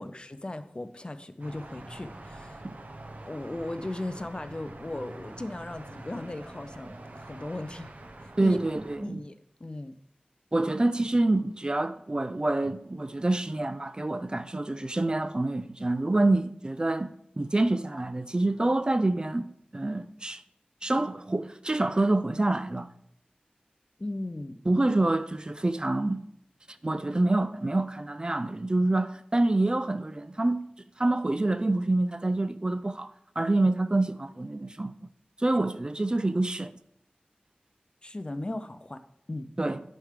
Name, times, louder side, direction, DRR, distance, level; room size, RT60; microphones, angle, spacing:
voice 1, 0.0-2.6 3.2-7.9 8.4-8.6 9.0-9.9 24.0-24.6 27.0-27.1 38.0-39.0 39.3-39.5, left 2 dB, 35° left, 0.5 m, -37 dB
sound 1, 1.4-9.0, right 2 dB, 65° right, 0.8 m, -45 dB
voice 2, 8.4-9.2 10.5-20.4 20.8-22.9 24.7-26.2 26.8-30.7 31.0-35.1 35.4-36.8 39.6-39.8, right 2 dB, 30° right, 0.3 m, -27 dB
9.6 x 3.4 x 5.0 m
wide cardioid pair, 65°, 3 cm